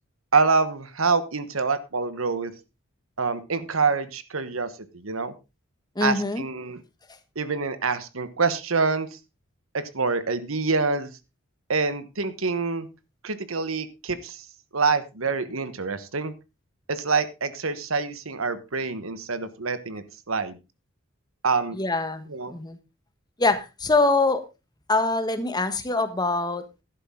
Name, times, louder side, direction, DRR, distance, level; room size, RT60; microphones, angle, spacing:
voice 1, 0.3-2.5 3.2-5.3 6.0-6.8 7.3-9.1 9.7-11.1 11.7-12.9 13.2-14.4 14.7-16.3 16.9-20.6 21.4-21.8 22.3-22.6, right 4 dB, 85° right, 12 dB, 1.3 m, -26 dB
voice 2, 5.9-6.4 21.7-22.8 23.4-24.4 24.9-26.7, left 3 dB, 20° left, 9 dB, 1.4 m, -24 dB
11.5 x 11.5 x 3.8 m, 0.27 s
head